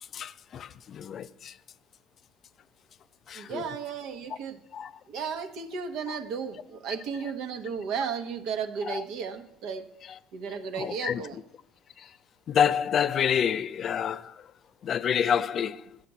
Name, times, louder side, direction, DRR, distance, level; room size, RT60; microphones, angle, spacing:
voice 1, 0.1-1.6 3.3-3.7 4.7-4.9 8.8-9.0 10.8-11.2 12.0-12.1 12.5-14.4 14.8-16.0, left 8 dB, 50° left, 0.4 m, -28 dB
voice 2, 3.3-4.6 5.1-9.8 10.3-11.4, right 6 dB, 70° right, 1.0 m, -34 dB
8.2 x 5.8 x 6.7 m
hypercardioid pair, 75°, 0 cm